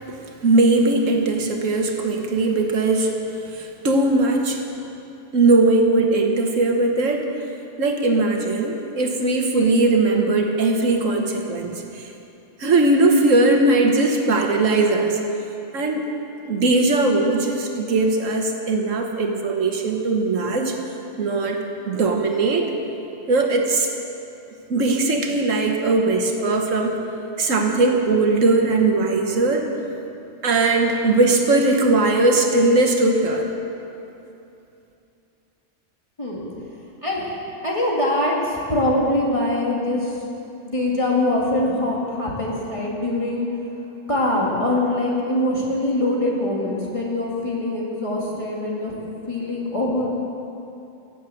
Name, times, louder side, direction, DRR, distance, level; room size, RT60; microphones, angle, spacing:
voice 1, 0.4-3.1 3.5-4.6 5.3-7.3 7.8-12.0 12.6-15.2 15.7-16.1 16.4-20.8 21.2-22.7 23.3-23.9 24.7-26.9 27.4-29.7 30.4-33.5, right 2 dB, 85° right, 3 dB, 1.6 m, -19 dB
voice 2, 37.6-40.2 40.6-43.5 44.1-48.9 49.3-50.1, left 1 dB, 25° left, -4 dB, 2.3 m, -23 dB
16.5 x 7.4 x 7.8 m, 2.8 s
omnidirectional pair, 1.3 m